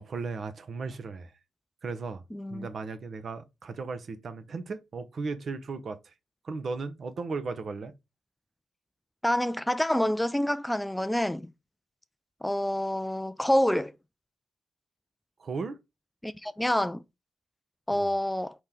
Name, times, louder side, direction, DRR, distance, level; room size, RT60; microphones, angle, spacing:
voice 1, 0.0-1.3 1.8-2.2 2.5-6.1 6.4-7.9 15.4-15.8 17.9-18.1, right 4 dB, 55° right, 0.8 m, -36 dB
voice 2, 2.3-2.7 9.2-11.5 12.4-13.9 16.2-17.0 17.9-18.5, left 1 dB, 5° left, 0.3 m, -27 dB
4.3 x 3.0 x 3.7 m
hypercardioid pair, 45°, 0 cm